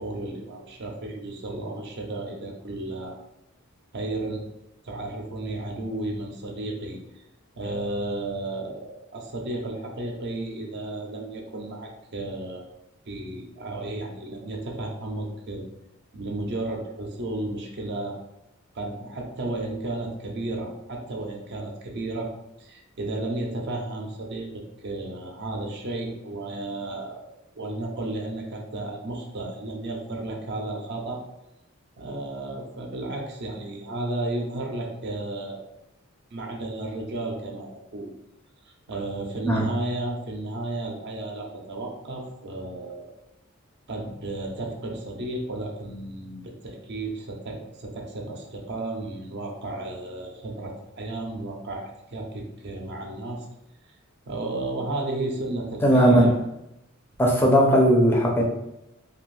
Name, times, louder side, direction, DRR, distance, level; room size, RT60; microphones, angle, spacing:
voice 1, 0.0-3.2 3.9-4.4 4.8-7.2 7.5-12.6 13.1-15.7 16.1-18.2 18.7-22.3 22.6-27.3 27.5-31.2 32.0-35.7 36.3-38.1 38.6-43.1 43.9-53.5 54.3-56.4, right 2 dB, 50° right, 1 dB, 0.5 m, -33 dB
voice 2, 55.8-56.3 57.2-58.4, equal, 10° left, -2 dB, 0.4 m, -18 dB
2.5 x 2.3 x 3.1 m, 0.87 s
head